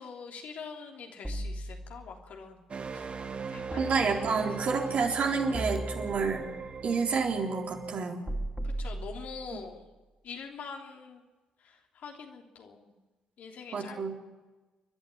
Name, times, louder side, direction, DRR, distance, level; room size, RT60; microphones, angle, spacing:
voice 1, 0.0-2.6 2.9-3.0 3.5-3.9 8.8-9.9 10.2-11.2 11.6-12.9 13.4-14.1, left 5 dB, 65° left, 2 dB, 3.3 m, -44 dB
sound 1, 1.2-2.3 3.7-4.7 5.5-6.6 8.3-9.7, right 1 dB, 5° right, 3.7 m, -37 dB
sound 2, 2.7-8.0, right 5 dB, 40° right, 1.4 m, -39 dB
voice 2, 3.7-6.4 6.8-8.3 13.7-14.1, right 5 dB, 60° right, 1 dB, 4.1 m, -29 dB
29.0 x 11.5 x 9.1 m, 1.2 s
hypercardioid pair, 55°, 3 cm